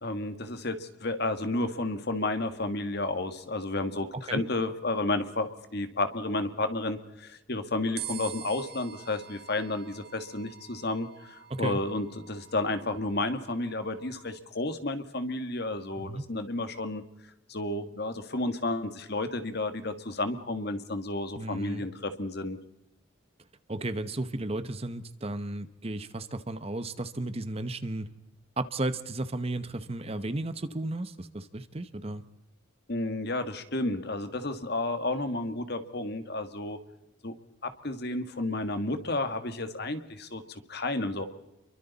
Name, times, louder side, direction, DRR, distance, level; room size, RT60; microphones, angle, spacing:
voice 1, 0.0-17.0 17.5-22.6 32.9-36.8 37.2-37.3 37.6-41.2, left 2 dB, 55° left, 9 dB, 1.8 m, -32 dB
sound 1, 8.0-14.4, right 11 dB, 50° right, 1.2 m, -46 dB
voice 2, 21.4-21.8 23.7-28.1 28.6-32.2, right 2 dB, 30° right, 12 dB, 1.0 m, -34 dB
30.0 x 23.5 x 4.2 m, 0.94 s
head